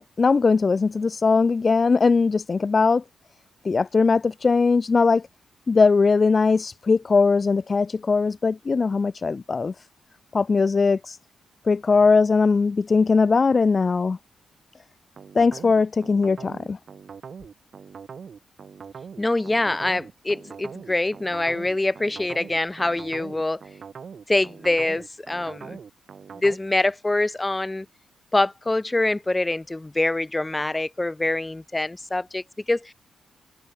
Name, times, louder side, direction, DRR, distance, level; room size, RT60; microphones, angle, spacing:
voice 1, 0.0-3.0 3.6-5.2 5.7-9.7 10.3-11.2 11.7-14.2 15.3-16.8, left 4 dB, 40° left, 0.3 m, -20 dB
sound 1, 15.2-26.6, right 6 dB, 55° right, 1.4 m, -41 dB
voice 2, 19.2-23.6 24.3-25.8 26.3-27.9 28.3-32.9, left 2 dB, 15° left, 1.5 m, -25 dB
cardioid pair, 75°, 0 cm